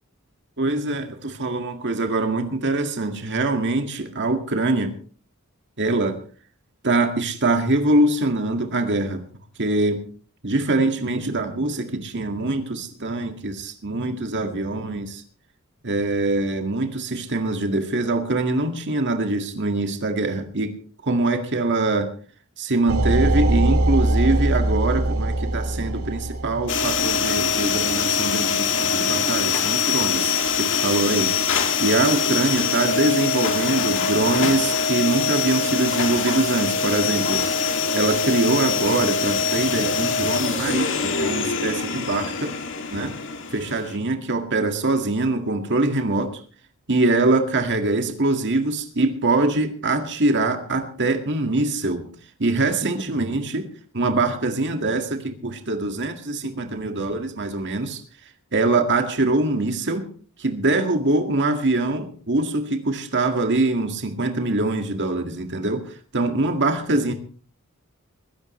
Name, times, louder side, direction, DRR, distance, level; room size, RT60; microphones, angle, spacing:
voice 1, 0.6-4.9 5.8-6.2 6.8-9.2 9.6-10.1 10.4-15.2 15.8-20.8 21.0-22.1 22.6-42.5 42.9-43.2 43.5-46.4 46.9-52.1 52.4-58.0 58.5-60.1 60.4-67.1, right 2 dB, 55° right, 5 dB, 2.0 m, -23 dB
sound 1, 22.9-27.7, right 1 dB, 75° right, 2.4 m, -22 dB
sound 2, 26.7-43.9, left 5 dB, 60° left, 2.5 m, -23 dB
22.5 x 16.5 x 3.2 m, 0.41 s
head